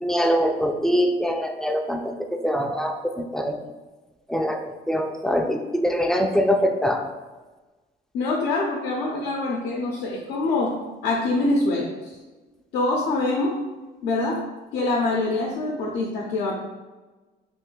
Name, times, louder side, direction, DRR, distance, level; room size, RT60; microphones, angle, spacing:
voice 1, 0.0-3.6 4.3-4.6 4.9-7.1, equal, 5° left, 4 dB, 0.3 m, -23 dB
voice 2, 8.1-10.7 11.0-12.1 12.7-13.6 14.0-14.4 14.7-16.6, left 2 dB, 85° left, -3 dB, 0.6 m, -24 dB
3.2 x 2.5 x 3.7 m, 1.2 s
cardioid pair, 110°, 17 cm